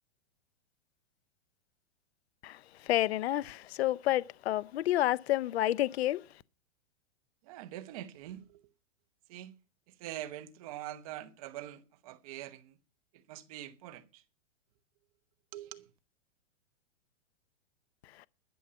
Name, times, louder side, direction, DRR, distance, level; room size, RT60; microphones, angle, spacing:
voice 1, 2.9-6.2, left 14 dB, 65° left, 0.6 m, -29 dB
voice 2, 7.4-8.6 9.3-9.5 9.9-12.8 13.1-14.2 15.5-15.9, right 13 dB, 30° right, 1.0 m, -44 dB
12.0 x 7.1 x 8.6 m
supercardioid pair, 170°, 34 cm